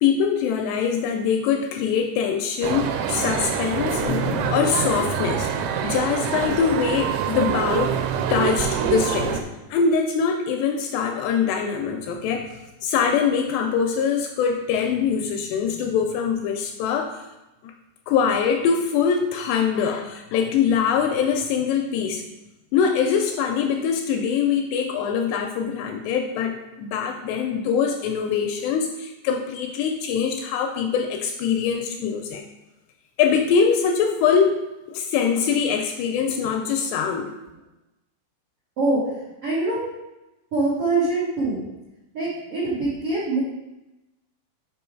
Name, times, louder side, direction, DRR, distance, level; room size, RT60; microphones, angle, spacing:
voice 1, 0.0-5.5 5.8-8.0 8.3-9.4 9.7-17.2 17.6-17.7 18.1-22.3 22.7-32.4 33.2-34.6 34.9-37.3, left 6 dB, 80° left, 4 dB, 2.5 m, -23 dB
sound 1, 2.6-9.4, right 8 dB, 90° right, 2.9 m, -25 dB
voice 2, 39.4-39.8 40.5-41.6 42.1-43.4, right 2 dB, 70° right, -8 dB, 1.4 m, -23 dB
6.1 x 5.4 x 4.5 m, 0.98 s
omnidirectional pair, 5.1 m